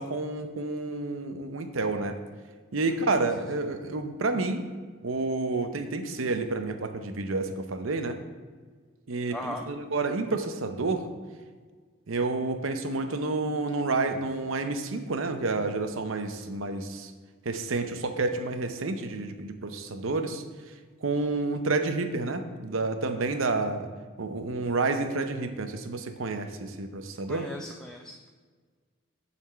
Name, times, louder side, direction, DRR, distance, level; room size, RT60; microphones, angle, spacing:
voice 1, 0.0-2.2 2.7-4.6 5.0-8.2 9.1-11.1 12.1-17.1 17.4-20.4 21.0-23.9 24.2-27.5, right 3 dB, 85° right, 7 dB, 0.7 m, -29 dB
voice 2, 9.3-9.7 27.3-28.3, left 1 dB, 5° left, 1 dB, 0.3 m, -38 dB
7.3 x 4.2 x 6.7 m, 1.5 s
head